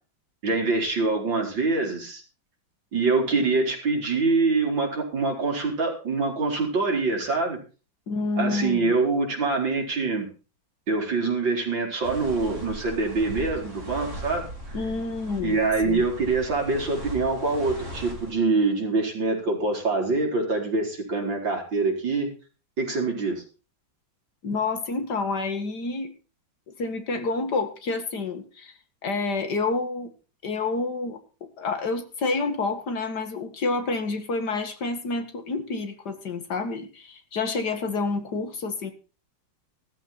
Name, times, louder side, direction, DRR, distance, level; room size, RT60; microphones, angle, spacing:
voice 1, 0.4-2.2 2.9-7.6 8.4-10.3 10.9-14.4 15.4-22.3 22.8-23.4, right 3 dB, 70° right, 1 dB, 5.1 m, -25 dB
voice 2, 8.1-8.9 14.7-16.1 24.4-26.1 26.7-28.7 29.0-30.1 30.4-31.2 31.6-38.9, left 3 dB, 55° left, 7 dB, 2.5 m, -28 dB
sound 1, 12.0-18.3, equal, 35° right, 4.7 m, -38 dB
15.5 x 13.5 x 4.3 m, 0.35 s
omnidirectional pair, 2.1 m